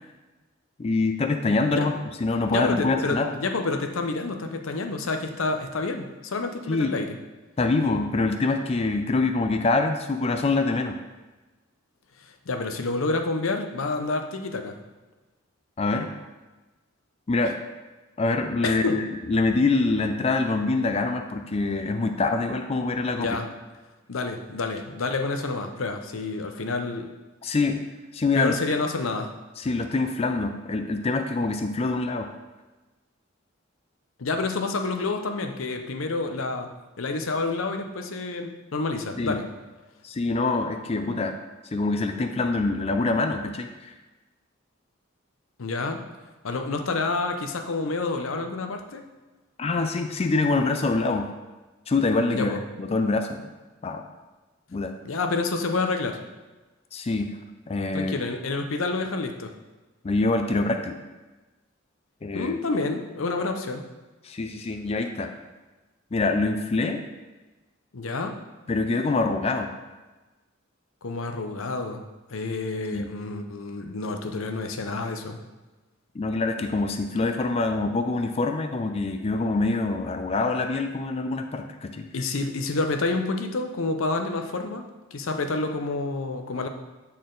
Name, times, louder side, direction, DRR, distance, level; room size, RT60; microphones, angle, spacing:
voice 1, 0.8-1.9 2.2-3.3 6.7-6.9 7.6-11.0 15.8-16.1 17.3-17.6 18.2-23.3 27.4-27.8 28.1-28.5 29.6-32.3 39.2-39.4 40.0-41.3 41.7-43.9 49.6-51.3 51.9-52.5 52.8-53.4 53.8-54.0 54.7-54.9 56.9-57.3 57.7-58.2 60.0-61.0 62.2-62.5 64.2-65.3 66.1-67.0 68.7-69.7 72.9-73.1 76.2-82.1, left 3 dB, 30° left, 6 dB, 0.4 m, -25 dB
voice 2, 2.5-7.2 12.5-14.7 18.6-19.0 23.2-23.5 24.1-27.1 28.4-29.3 34.2-36.7 37.0-39.5 45.6-46.0 46.4-49.0 52.3-52.6 55.0-56.2 57.9-59.5 62.3-63.8 67.9-68.4 71.0-72.0 72.3-75.4 82.1-86.7, left 3 dB, 75° left, 5 dB, 0.7 m, -28 dB
8.4 x 4.3 x 3.8 m, 1.2 s
head